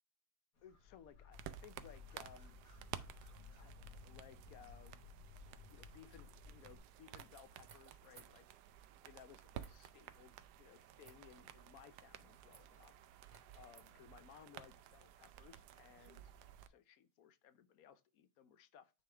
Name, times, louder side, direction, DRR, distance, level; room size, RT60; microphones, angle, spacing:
sound 1, 0.6-6.8, left 4 dB, 90° left, 2.3 m, -57 dB
voice 1, 0.6-2.6 3.4-5.1 5.5-8.5 9.0-12.9 13.5-16.3 16.7-18.9, left 9 dB, 70° left, 1.1 m, -61 dB
sound 2, 1.3-16.7, right 10 dB, 85° right, 1.2 m, -55 dB
sound 3, 7.1-8.5 9.5-9.9 11.0-11.4 12.5-12.9 13.3-13.9 14.8-16.2, right 5 dB, 50° right, 0.5 m, -64 dB
9.5 x 3.5 x 3.3 m
omnidirectional pair, 1.7 m